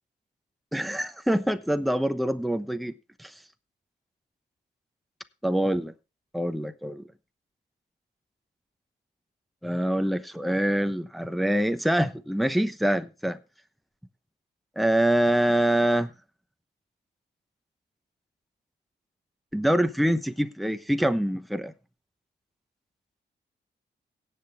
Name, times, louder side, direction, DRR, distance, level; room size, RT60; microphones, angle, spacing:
voice 1, 0.7-2.9 3.2-3.3 5.4-5.9 6.3-7.0 9.6-13.4 14.8-16.1 19.5-21.7, right 1 dB, ahead, 0.9 m, -25 dB
17.5 x 7.8 x 3.4 m
cardioid pair, 90°, 19 cm